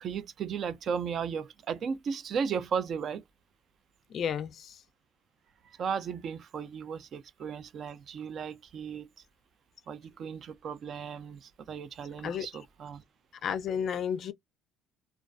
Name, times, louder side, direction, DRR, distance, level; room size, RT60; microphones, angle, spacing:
voice 1, 0.0-3.2 5.6-9.1 9.9-13.0, right 6 dB, 40° right, 0.3 m, -35 dB
voice 2, 4.1-4.8 12.2-12.5 13.4-14.3, left 8 dB, 45° left, 0.3 m, -32 dB
2.4 x 2.3 x 2.3 m
cardioid pair, 145°, 0 cm